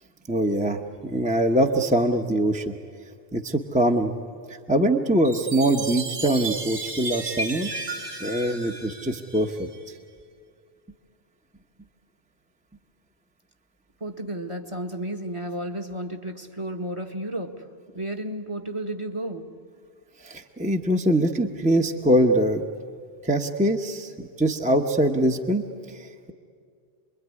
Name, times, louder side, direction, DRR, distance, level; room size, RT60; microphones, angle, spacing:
voice 1, 0.3-2.7 3.3-4.1 4.5-7.7 8.2-9.7 20.2-22.6 23.2-26.1, right 1 dB, 10° right, 3 dB, 1.0 m, -23 dB
Chime, 5.2-9.8, right 3 dB, 65° right, 2.7 m, -34 dB
voice 2, 14.0-17.7 17.9-19.5, right 1 dB, 30° right, 3 dB, 1.5 m, -32 dB
27.5 x 22.0 x 9.7 m, 2.2 s
omnidirectional pair, 1.0 m